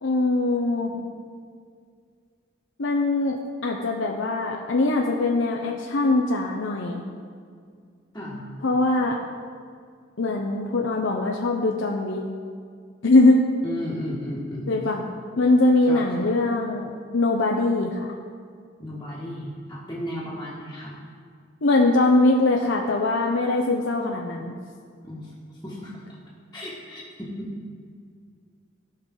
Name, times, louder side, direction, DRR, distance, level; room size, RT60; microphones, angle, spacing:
voice 1, 0.0-0.9 2.8-7.0 8.6-9.2 10.2-12.2 13.0-13.4 14.7-15.0 15.4-18.1 21.6-24.6, left 2 dB, 75° left, 1 dB, 0.7 m, -22 dB
voice 2, 8.1-8.4 13.6-14.8 15.9-16.3 18.8-20.9 25.0-25.3 25.6-25.9 26.5-27.5, left 1 dB, 15° left, -9 dB, 1.6 m, -34 dB
17.0 x 5.7 x 3.8 m, 2.1 s
head